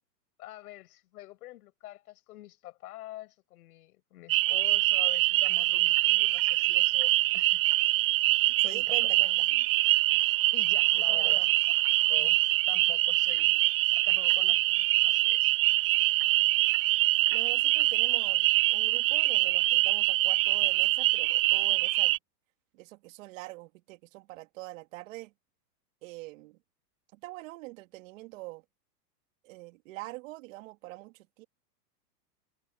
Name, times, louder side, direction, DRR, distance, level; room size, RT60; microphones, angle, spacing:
voice 1, 0.4-7.6 8.6-9.4 10.1-10.2 10.5-11.5 12.1-13.6 14.0-15.5 16.2-16.4, left 16 dB, 65° left, 6.7 m, -46 dB
sound 1, 4.3-22.2, right 19 dB, 35° right, 0.5 m, -24 dB
voice 2, 8.6-9.3 11.1-11.5 17.3-22.1 22.7-25.3 26.0-26.6 27.1-28.6 29.4-31.4, right 21 dB, 50° right, 2.5 m, -44 dB
supercardioid pair, 150°, 49 cm